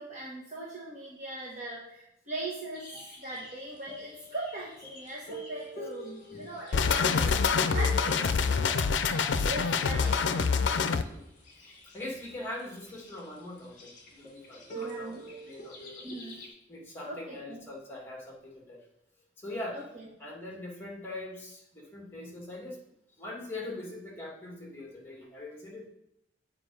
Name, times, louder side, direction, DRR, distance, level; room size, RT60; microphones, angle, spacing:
voice 1, 0.0-2.9 3.2-8.3 9.4-10.2 14.7-15.2 16.0-16.4 17.0-17.6 19.7-20.0, right 1 dB, 40° right, -5 dB, 1.3 m, -40 dB
sound 1, 2.7-16.5, right 1 dB, 45° left, 1.8 m, -46 dB
sound 2, 6.7-11.0, left 5 dB, 75° left, 0.5 m, -26 dB
voice 2, 9.5-10.6 11.0-11.3 11.9-16.0 16.7-18.8 19.4-19.9 20.2-22.8 23.2-25.9, left 1 dB, 15° left, -2 dB, 2.0 m, -42 dB
7.7 x 4.9 x 4.7 m, 0.81 s
head